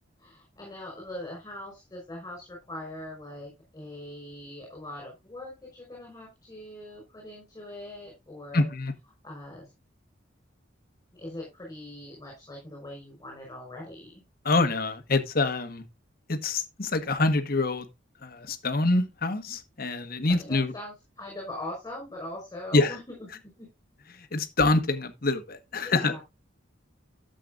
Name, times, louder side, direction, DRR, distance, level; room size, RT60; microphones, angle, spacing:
voice 1, 0.2-8.7 9.2-9.7 11.1-14.2 20.3-23.7 25.8-26.2, left 1 dB, 15° left, 5.2 m, -41 dB
voice 2, 8.5-8.9 14.4-15.8 16.3-17.9 18.2-20.7 22.7-22.9 24.1-26.2, left 2 dB, 50° left, 1.4 m, -26 dB
12.5 x 7.8 x 2.5 m
head